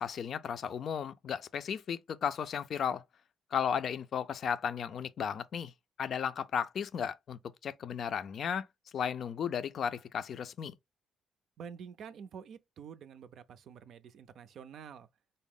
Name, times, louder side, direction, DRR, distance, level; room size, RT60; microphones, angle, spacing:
voice 1, 0.0-3.0 3.5-5.7 6.0-8.7 8.9-10.7, left 7 dB, 60° left, 0.4 m, -34 dB
voice 2, 11.6-15.1, right 7 dB, 70° right, 0.4 m, -48 dB
4.0 x 2.0 x 3.6 m
cardioid pair, 90°, 0 cm